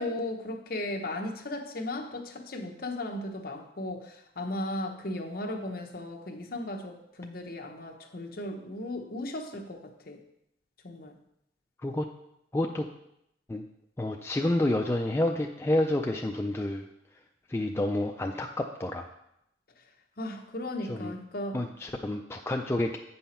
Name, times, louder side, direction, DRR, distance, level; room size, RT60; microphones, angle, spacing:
voice 1, 0.0-9.8 10.1-10.2 10.8-11.2 20.2-21.6, left 1 dB, 50° left, 2 dB, 0.9 m, -36 dB
voice 2, 12.5-12.9 13.5-13.6 14.0-16.8 17.5-19.1 20.9-21.1 21.5-23.0, left 1 dB, 15° left, 2 dB, 0.3 m, -29 dB
8.2 x 5.5 x 4.3 m, 0.80 s
head